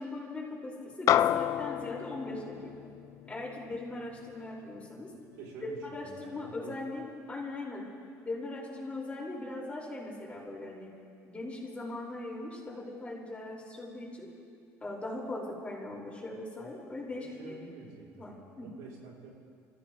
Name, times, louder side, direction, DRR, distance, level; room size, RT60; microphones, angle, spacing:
voice 1, 0.0-2.7 3.3-5.1 5.6-7.9 8.2-10.9 11.2-14.3 14.8-17.6 18.2-18.7, left 2 dB, 20° left, -4 dB, 5.3 m, -40 dB
sound 1, 1.1-5.7, left 11 dB, 60° left, 0.4 m, -31 dB
voice 2, 5.3-6.8 17.2-19.3, right 4 dB, 85° right, -3 dB, 3.4 m, -48 dB
28.0 x 15.0 x 3.2 m, 2.3 s
supercardioid pair, 100°, 6 cm